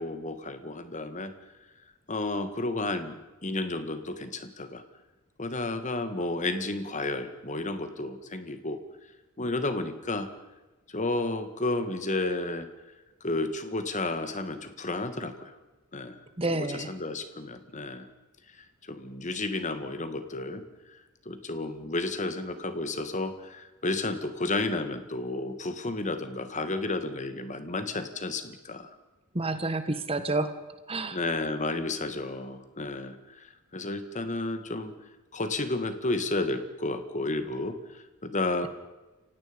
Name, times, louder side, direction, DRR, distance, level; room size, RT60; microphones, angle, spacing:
voice 1, 0.0-1.3 2.1-4.8 5.4-8.8 9.4-10.3 10.9-12.7 13.2-15.6 15.9-16.2 16.5-18.1 18.6-20.6 21.3-28.9 31.1-34.9 35.3-37.8 38.2-38.7, left 2 dB, 35° left, 9 dB, 2.0 m, -32 dB
voice 2, 16.4-16.9 29.3-30.5 30.9-31.2, right 2 dB, 25° right, 10 dB, 1.6 m, -29 dB
29.5 x 17.0 x 5.4 m, 1.1 s
head